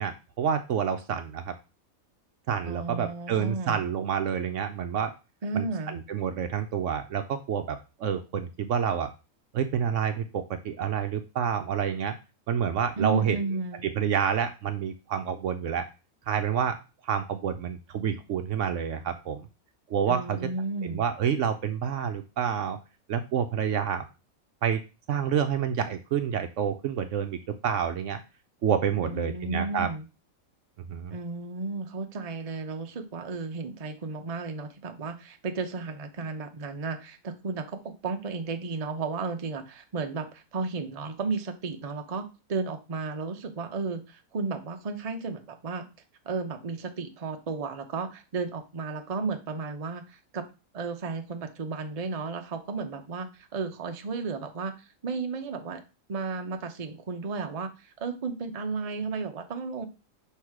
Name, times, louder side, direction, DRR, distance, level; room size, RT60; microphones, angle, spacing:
voice 1, 0.0-1.5 2.5-5.1 5.5-9.1 9.5-12.1 12.5-13.4 13.8-15.8 16.3-16.8 17.0-19.5 19.9-20.4 20.8-22.8 23.1-24.0 24.6-24.8 25.1-28.2 28.6-29.9 30.8-31.1, right 8 dB, 70° right, 8 dB, 0.9 m, -28 dB
voice 2, 2.6-3.8 5.4-6.0 13.0-13.9 20.1-21.0 29.0-30.1 31.1-45.8 46.2-50.4 50.7-55.8 56.1-59.9, right 4 dB, 35° right, 5 dB, 0.6 m, -33 dB
6.1 x 3.2 x 4.8 m, 0.29 s
omnidirectional pair, 1.5 m